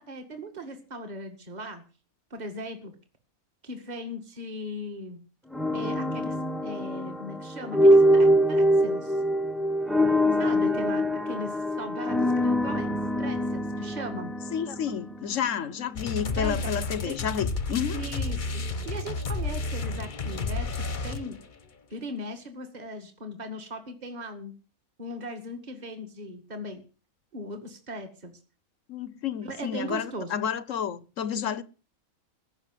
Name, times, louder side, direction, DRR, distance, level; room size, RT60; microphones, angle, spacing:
voice 1, 0.1-1.8 2.3-2.9 3.6-5.2 5.7-6.4 6.6-9.2 10.4-14.3 16.4-16.6 17.1-17.2 17.9-21.4 21.9-24.5 25.0-26.8 27.3-28.3 29.4-30.3, equal, 30° right, 2.2 m, -38 dB
sound 1, 5.5-15.6, equal, ahead, 0.7 m, -24 dB
voice 2, 14.5-18.0 28.9-31.6, left 8 dB, 65° left, 1.2 m, -30 dB
sound 2, 16.0-21.5, left 3 dB, 35° left, 1.1 m, -31 dB
15.5 x 6.6 x 9.3 m
omnidirectional pair, 1.5 m